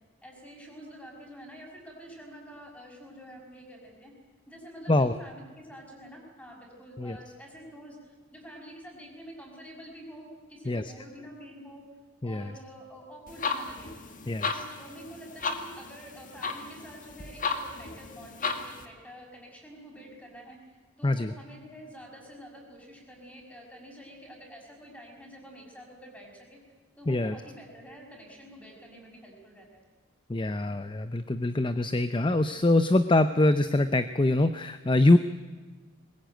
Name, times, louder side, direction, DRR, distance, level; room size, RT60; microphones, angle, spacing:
voice 1, 0.2-4.1 4.5-11.8 12.2-13.9 14.4-26.6 27.0-29.8, equal, 5° left, 0 dB, 6.0 m, -48 dB
sound 1, 13.3-18.9, left 4 dB, 45° left, 1.9 m, -35 dB
voice 2, 21.0-21.3 27.1-27.3 30.3-35.2, left 2 dB, 25° left, 11 dB, 0.7 m, -24 dB
21.5 x 21.0 x 9.1 m, 1.4 s
head